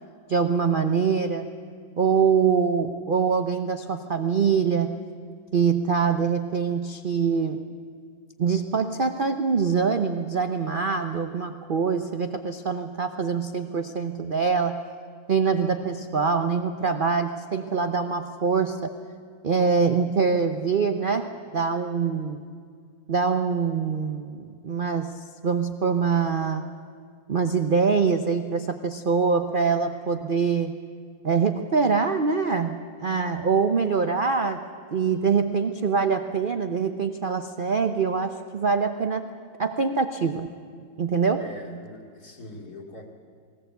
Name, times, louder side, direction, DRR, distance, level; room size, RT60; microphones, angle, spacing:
voice 1, 0.3-1.5 2.0-4.9 5.5-7.7 8.4-14.8 15.3-18.9 19.4-22.4 23.1-26.7 27.3-30.7 31.2-34.6 34.9-39.3 39.6-40.5 41.0-41.5, right 5 dB, 85° right, 8 dB, 0.4 m, -24 dB
voice 2, 41.4-43.1, left 1 dB, 55° left, 0 dB, 3.0 m, -42 dB
20.5 x 18.5 x 8.0 m, 2.2 s
omnidirectional pair, 2.0 m